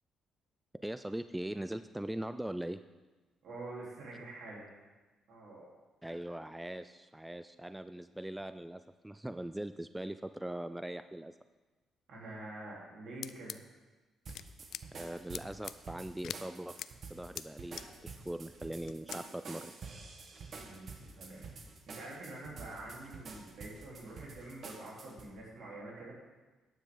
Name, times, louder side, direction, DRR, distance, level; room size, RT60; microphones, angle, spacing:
voice 1, 0.7-2.8 6.0-11.3 14.9-16.8 17.1-19.7, right 1 dB, 5° right, 11 dB, 0.3 m, -41 dB
voice 2, 3.4-4.7 5.3-5.7 12.1-13.7 20.6-21.5 21.9-26.1, right 2 dB, 70° right, -4 dB, 3.6 m, -46 dB
sound 1, 13.2-13.6 14.3-14.4 14.7-14.8 15.3-15.7 16.2-16.4 16.8-16.9 17.4-17.5 17.8-17.9 18.9-19.2, left 10 dB, 70° left, 0.3 m, -41 dB
sound 2, 14.2-25.3, right 4 dB, 55° right, 1.4 m, -49 dB
12.0 x 9.2 x 3.9 m, 1.2 s
cardioid pair, 90°, 0 cm